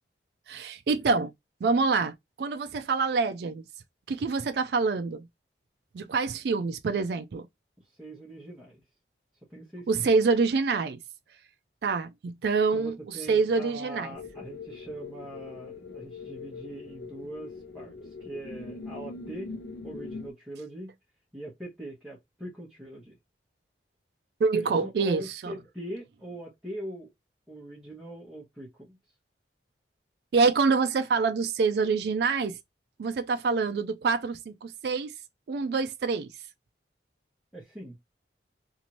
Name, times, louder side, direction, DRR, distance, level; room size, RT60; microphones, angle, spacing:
voice 1, 0.5-1.3 1.6-3.6 4.1-5.3 5.9-7.4 9.9-11.0 11.8-14.1 24.4-25.6 30.3-32.6 33.0-35.1 35.5-36.3, right 4 dB, 60° right, 0.3 m, -26 dB
voice 2, 8.0-8.8 9.5-9.9 12.7-19.5 19.8-20.9 21.3-23.1 24.5-27.1 27.5-29.0 37.5-38.0, right 1 dB, 5° right, 1.0 m, -42 dB
sound 1, 14.1-20.3, left 3 dB, 70° left, 0.6 m, -42 dB
2.8 x 2.5 x 2.9 m
head